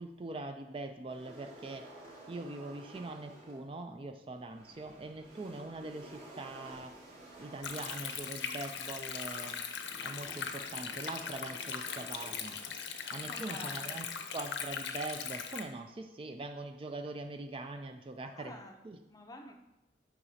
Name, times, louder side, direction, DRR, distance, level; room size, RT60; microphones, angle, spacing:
voice 1, 0.0-1.9 2.3-7.0 7.4-9.6 10.0-12.6 13.1-14.0 14.3-18.6 18.8-19.0, right 2 dB, 30° right, 6 dB, 0.4 m, -42 dB
sound 1, 1.1-3.7 4.4-13.2, right 1 dB, 50° right, 2.1 m, -54 dB
Stream, 7.6-15.6, left 6 dB, 75° left, 0.7 m, -40 dB
voice 2, 13.2-13.9 18.2-18.8 19.1-19.5, left 1 dB, 20° left, 4 dB, 0.6 m, -49 dB
8.6 x 5.9 x 2.7 m, 0.94 s
head